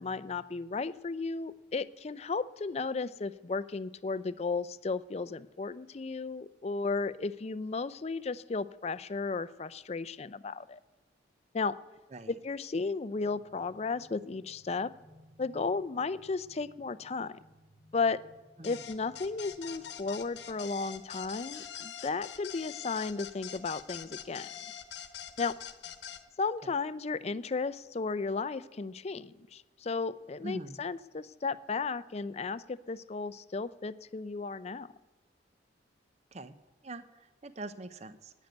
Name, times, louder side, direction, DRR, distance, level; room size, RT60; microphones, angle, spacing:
voice 1, 0.0-10.8 11.5-11.8 12.3-14.9 15.4-17.4 17.9-18.2 18.6-24.5 25.4-25.6 26.4-34.9, left 4 dB, 35° left, 16 dB, 0.4 m, -34 dB
sound 1, 13.1-21.3, equal, 80° right, 4.3 m, -61 dB
sound 2, 18.6-26.2, left 9 dB, 65° left, 1.0 m, -44 dB
voice 2, 30.4-30.8 36.3-36.6 36.8-38.3, right 2 dB, 35° right, 11 dB, 0.6 m, -43 dB
12.0 x 9.3 x 9.2 m, 1.1 s
head